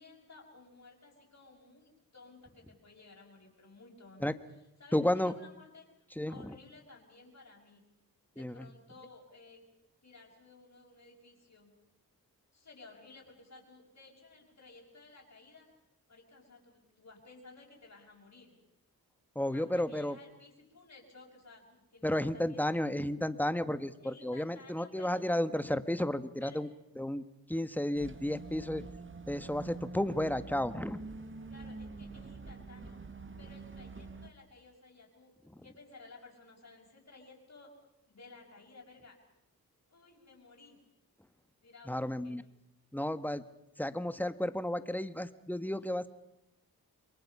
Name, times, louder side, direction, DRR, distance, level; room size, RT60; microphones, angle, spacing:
voice 1, 0.0-4.2 4.5-5.9 6.3-7.8 8.3-9.6 10.0-11.7 12.5-15.7 16.1-18.6 19.5-23.0 24.0-25.2 26.4-26.6 31.5-33.0 33.4-35.3 35.6-37.7 38.1-39.2 39.9-40.8 41.6-42.4 45.6-45.8, left 3 dB, 50° left, -5 dB, 6.1 m, -56 dB
voice 2, 4.9-5.3 6.2-6.5 8.4-8.5 19.3-20.1 22.0-26.7 27.0-27.2 27.5-28.8 29.3-31.0 41.9-42.4 42.9-43.4 43.8-46.1, left 1 dB, 5° left, 12 dB, 1.4 m, -32 dB
sound 1, 27.9-34.3, right 4 dB, 30° right, 1.9 m, -46 dB
28.5 x 23.0 x 5.6 m, 0.87 s
cardioid pair, 60°, 38 cm